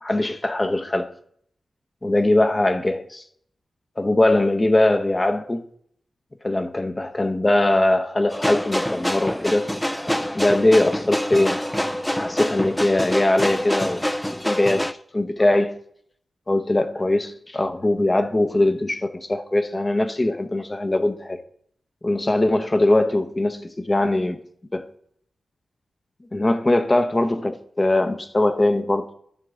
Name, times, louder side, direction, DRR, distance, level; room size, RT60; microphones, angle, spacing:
voice 1, 0.0-1.1 2.0-3.2 4.0-5.6 6.4-9.7 10.3-11.6 12.1-14.1 14.4-15.8 16.5-21.4 22.0-24.4 24.7-24.8 26.3-29.1, left 1 dB, 30° left, 0.9 m, -21 dB
sound 1, 8.3-14.9, equal, 10° left, 0.5 m, -26 dB
11.0 x 6.7 x 3.8 m
cardioid pair, 50°, 0 cm